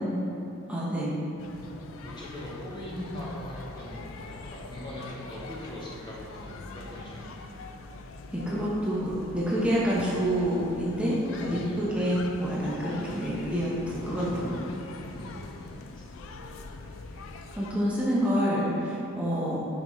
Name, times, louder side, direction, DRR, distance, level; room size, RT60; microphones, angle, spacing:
voice 1, 0.7-1.1 8.3-14.6 17.5-19.6, equal, 5° right, -7 dB, 0.9 m, -27 dB
sound 1, 1.4-17.7, left 3 dB, 80° left, 0.4 m, -43 dB
voice 2, 1.6-7.5 11.5-11.9 14.3-14.4 15.1-16.0, left 1 dB, 20° left, -7 dB, 0.8 m, -41 dB
5.9 x 5.1 x 3.1 m, 3.0 s
head